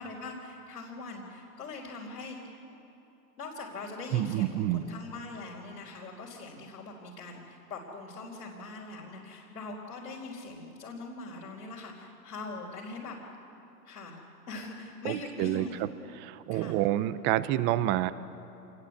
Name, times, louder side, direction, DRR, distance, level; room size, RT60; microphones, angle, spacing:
voice 1, 0.0-2.6 3.4-13.2 13.8-14.2 14.5-15.9 16.5-16.8, left 3 dB, 85° left, -4 dB, 4.3 m, -42 dB
voice 2, 4.1-4.8 15.0-15.9 16.2-18.1, right 13 dB, 25° right, 16 dB, 0.6 m, -28 dB
26.0 x 20.5 x 8.4 m, 2.8 s
hypercardioid pair, 125°, 48 cm